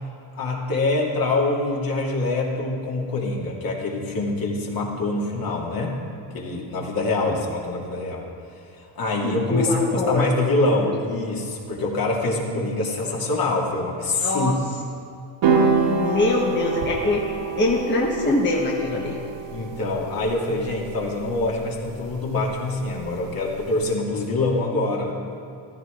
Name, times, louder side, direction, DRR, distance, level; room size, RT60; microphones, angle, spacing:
voice 1, 0.3-6.0 6.3-8.3 9.0-14.5 19.5-25.2, left 2 dB, 45° left, -2 dB, 2.6 m, -25 dB
voice 2, 9.2-10.3 14.2-14.5 16.0-17.2 17.6-19.1, left 2 dB, 25° left, -3 dB, 1.4 m, -23 dB
sound 1, 15.4-23.8, right 4 dB, 70° right, 2.4 m, -27 dB
15.0 x 12.5 x 3.9 m, 2.7 s
cardioid pair, 105°, 47 cm